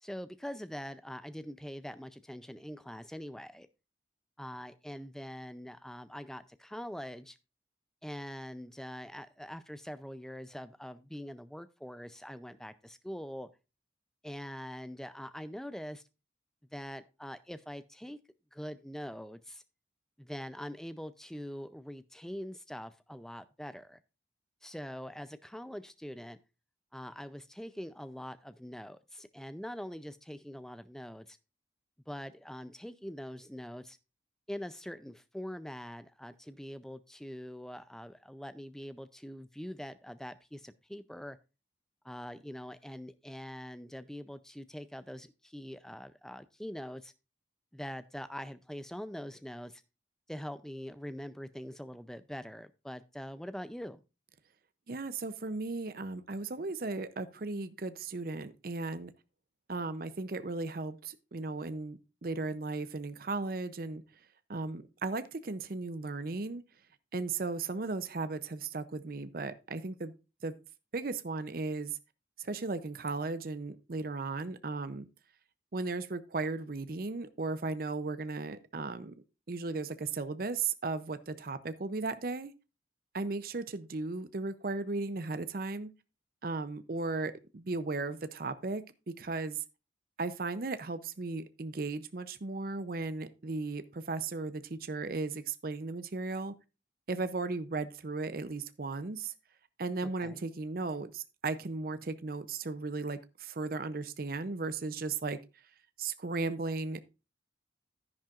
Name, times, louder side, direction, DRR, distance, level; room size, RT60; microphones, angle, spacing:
voice 1, 0.0-3.7 4.4-7.4 8.0-13.5 14.2-16.0 16.7-18.2 18.5-19.6 20.2-24.0 24.6-26.4 26.9-31.4 32.1-34.0 34.5-41.4 42.0-47.1 47.7-49.8 50.3-54.0 100.0-100.4, equal, 5° left, 0.4 m, -43 dB
voice 2, 54.9-59.1 59.7-64.0 64.5-66.6 67.1-70.1 70.4-70.6 70.9-72.0 72.4-75.1 75.7-79.1 79.5-82.5 83.1-85.9 86.4-88.8 89.2-89.6 90.2-96.5 97.1-99.3 99.8-105.4 106.0-107.1, right 3 dB, 50° right, 0.6 m, -36 dB
10.5 x 10.5 x 2.4 m
head